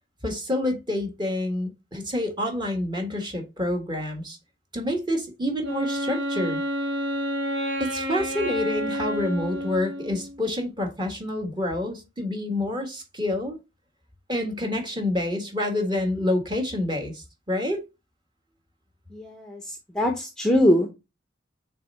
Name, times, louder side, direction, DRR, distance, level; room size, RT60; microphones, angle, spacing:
voice 1, 0.2-4.4 4.7-6.6 7.8-13.6 14.3-17.8, left 1 dB, 25° right, 1.5 m, -28 dB
Wind instrument woodwind instrument, 5.6-10.4, equal, 80° right, 1.7 m, -29 dB
voice 2, 19.1-20.9, equal, 5° left, 0.8 m, -22 dB
6.7 x 3.5 x 4.2 m
head